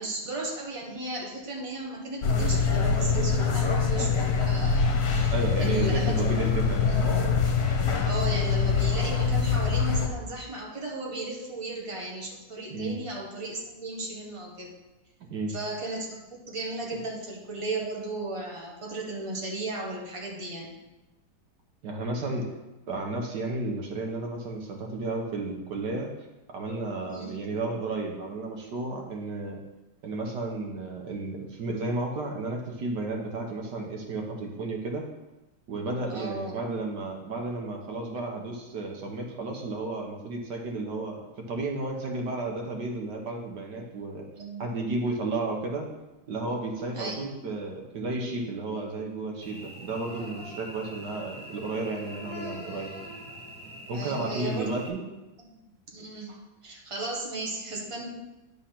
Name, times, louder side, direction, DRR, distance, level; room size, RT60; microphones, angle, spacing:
voice 1, 0.0-6.2 8.0-14.7 15.5-20.7 27.1-27.3 36.1-36.6 44.4-44.6 46.9-47.2 53.9-54.7 55.9-58.1, right 2 dB, 20° right, -2 dB, 1.4 m, -35 dB
sound 1, 2.2-10.1, left 5 dB, 60° left, 1.3 m, -24 dB
voice 2, 5.3-7.0 12.7-12.9 15.3-15.5 21.8-22.5 22.9-26.1 26.5-29.6 30.0-35.1 35.7-41.2 41.5-44.2 44.6-45.9 46.3-52.9 53.9-55.0, right 2 dB, 70° right, 1 dB, 1.6 m, -32 dB
Cricket / Buzz, 49.4-54.9, equal, 5° left, 1.5 m, -43 dB
10.0 x 4.0 x 5.8 m, 1.0 s
omnidirectional pair, 1.9 m